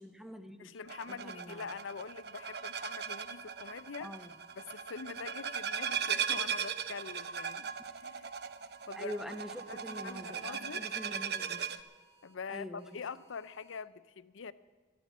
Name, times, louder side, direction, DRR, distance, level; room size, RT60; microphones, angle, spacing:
voice 1, 0.0-0.7 1.1-1.7 4.0-4.3 8.9-11.6 12.5-12.9, equal, ahead, 8 dB, 0.9 m, -44 dB
voice 2, 0.6-4.1 4.6-7.8 8.0-8.3 8.9-9.2 9.7-10.9 12.2-14.5, left 5 dB, 80° left, 17 dB, 0.6 m, -44 dB
sound 1, 0.9-11.8, right 7 dB, 55° right, 0.7 m, -38 dB
sound 2, 2.4-4.7 5.4-6.4 6.8-7.9 8.3-10.7 11.3-12.3 12.8-13.8, right 3 dB, 25° right, 1.5 m, -66 dB
13.0 x 11.5 x 7.3 m, 1.5 s
head